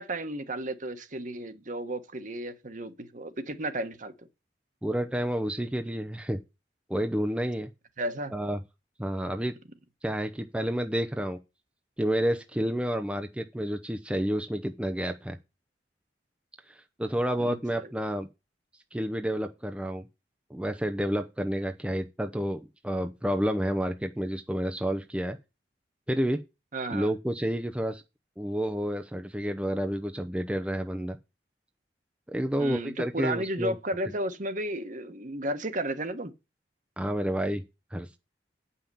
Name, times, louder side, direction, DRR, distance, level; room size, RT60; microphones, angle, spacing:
voice 1, 0.0-4.1 8.0-8.3 17.4-17.9 26.7-27.1 32.6-36.3, right 1 dB, 45° right, 1.3 m, -33 dB
voice 2, 4.8-6.4 6.9-7.7 8.3-8.6 9.0-9.5 10.0-11.4 12.0-15.4 16.7-18.3 18.9-20.0 20.5-25.4 26.1-26.4 26.9-28.0 28.4-31.2 32.3-33.7 37.0-37.6 37.9-38.2, equal, 5° right, 0.6 m, -30 dB
8.7 x 5.8 x 6.9 m
head